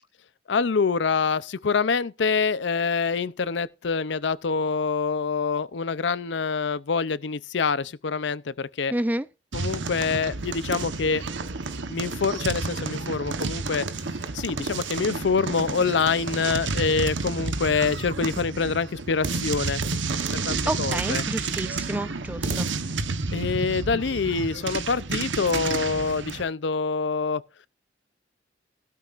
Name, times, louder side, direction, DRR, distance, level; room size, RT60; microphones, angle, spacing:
voice 1, 0.5-8.9 9.5-11.2 11.9-13.9 14.3-19.8 20.3-21.2 23.3-27.4, left 5 dB, 70° left, 0.6 m, -26 dB
voice 2, 8.9-9.3 20.7-22.7, right 1 dB, 10° right, 0.5 m, -29 dB
sound 1, 9.5-26.4, right 4 dB, 85° right, 1.1 m, -30 dB
15.5 x 12.5 x 2.5 m
head